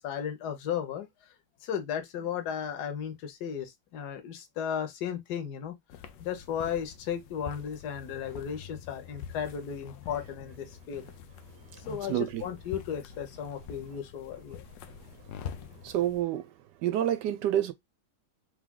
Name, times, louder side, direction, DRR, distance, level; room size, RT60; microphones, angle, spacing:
voice 1, 0.0-1.3 1.6-5.7 6.2-11.1 11.7-14.6, left 8 dB, 65° left, 1.4 m, -35 dB
sound 1, 5.9-16.2, left 8 dB, 80° left, 1.3 m, -46 dB
voice 2, 11.7-12.4 15.8-16.5 16.8-17.7, right 11 dB, 75° right, 1.1 m, -29 dB
3.7 x 3.3 x 3.6 m
omnidirectional pair, 2.0 m